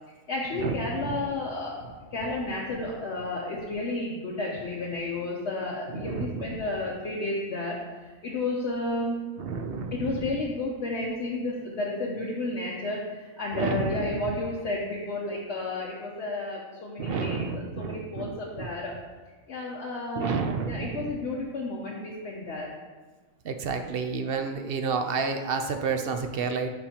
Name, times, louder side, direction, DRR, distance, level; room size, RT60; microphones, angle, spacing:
voice 1, 0.3-1.8 2.1-9.3 9.9-18.9 19.5-20.4 20.7-22.7, left 2 dB, 60° left, -4 dB, 1.1 m, -32 dB
voice 2, 5.9-6.6 9.4-10.2 13.5-14.0 17.0-18.7 20.1-21.0 23.4-26.7, right 5 dB, 60° right, 6 dB, 0.7 m, -30 dB
10.0 x 4.3 x 2.8 m, 1.3 s
omnidirectional pair, 1.4 m